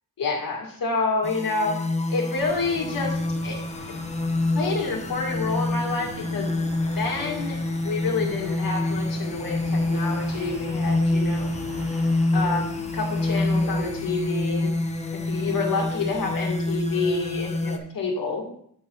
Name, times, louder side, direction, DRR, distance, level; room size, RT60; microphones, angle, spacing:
voice 1, 0.2-1.7 2.1-3.6 3.9-4.0 4.5-6.6 6.8-7.6 7.8-11.5 12.3-14.7 15.3-18.5, left 4 dB, 80° left, -1 dB, 2.0 m, -28 dB
sound 1, 1.2-17.8, left 2 dB, 20° left, 0.6 m, -27 dB
sound 2, 2.3-17.8, right 1 dB, 80° right, 2.6 m, -42 dB
8.0 x 4.3 x 4.6 m, 0.66 s
wide cardioid pair, 150°, 34 cm